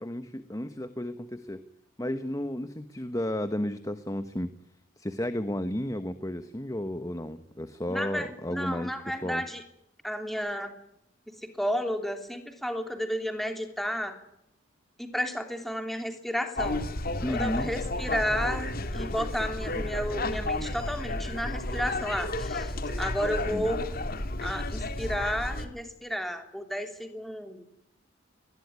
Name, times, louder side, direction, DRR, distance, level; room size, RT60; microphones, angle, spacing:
voice 1, 0.0-1.7 2.0-4.5 5.0-9.4 17.2-17.7 23.5-23.7, left 1 dB, 15° left, 10 dB, 1.1 m, -33 dB
voice 2, 7.9-9.6 10.0-10.7 11.4-14.2 15.0-16.9 17.2-22.7 23.0-23.8 24.4-27.6, equal, ahead, 5 dB, 3.1 m, -32 dB
sound 1, 16.6-25.7, left 2 dB, 45° left, 2.3 m, -32 dB
23.5 x 20.5 x 9.7 m, 0.80 s
head